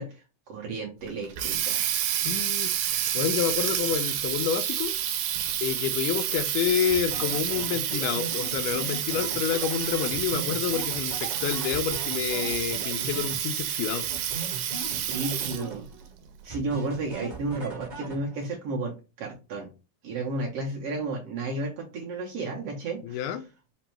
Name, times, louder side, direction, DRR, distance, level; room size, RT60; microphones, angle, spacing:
voice 1, 0.0-1.9 15.1-15.8 16.4-19.7 20.0-23.4, right 2 dB, 70° right, 1.5 m, -33 dB
Water tap faucet, 1.1-15.8, right 11 dB, 85° right, 2.2 m, -29 dB
voice 2, 2.2-2.7 3.1-4.9 5.6-14.1 23.0-23.4, left 9 dB, 85° left, 2.0 m, -28 dB
sound 1, 6.9-13.7 14.1-16.1 16.5-18.5, right 3 dB, 35° right, 0.7 m, -39 dB
5.2 x 2.2 x 4.4 m
omnidirectional pair, 3.6 m